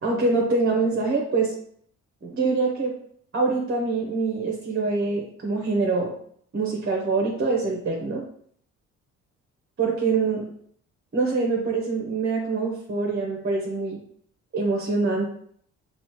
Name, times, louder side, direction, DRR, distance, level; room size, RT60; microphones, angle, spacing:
voice 1, 0.0-1.6 2.2-2.9 3.3-6.1 6.5-8.2 9.8-10.4 11.1-14.0 14.5-15.2, right 3 dB, 40° right, -2 dB, 1.1 m, -24 dB
5.3 x 2.5 x 3.0 m, 0.62 s
cardioid pair, 90°, 30 cm